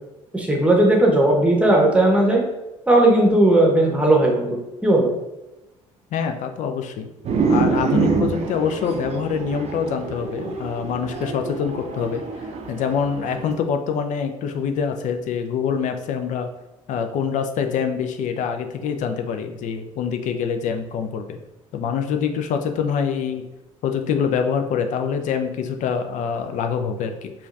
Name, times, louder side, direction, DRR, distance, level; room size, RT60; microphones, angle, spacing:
voice 1, 0.3-2.4 2.9-5.1, right 1 dB, 5° right, -1 dB, 1.0 m, -17 dB
voice 2, 6.1-7.1 7.5-12.2 12.7-16.5 16.9-21.4 21.7-23.5 23.8-27.3, left 6 dB, 45° left, 7 dB, 0.5 m, -25 dB
sound 1, 7.2-13.5, right 4 dB, 40° right, 0.6 m, -26 dB
5.0 x 2.4 x 2.5 m, 1.0 s
figure-of-eight pair, 55°, 17 cm